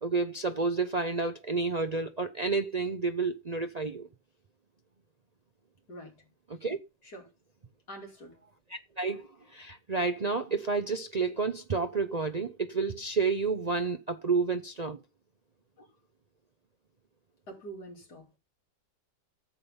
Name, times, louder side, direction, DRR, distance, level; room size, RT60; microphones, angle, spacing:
voice 1, 0.0-4.1 6.5-6.8 8.7-15.0, right 4 dB, 70° right, 0.3 m, -30 dB
voice 2, 7.9-8.3 15.8-15.9 17.5-18.4, right 1 dB, 65° left, 3.4 m, -45 dB
14.0 x 7.2 x 5.6 m
omnidirectional pair, 1.9 m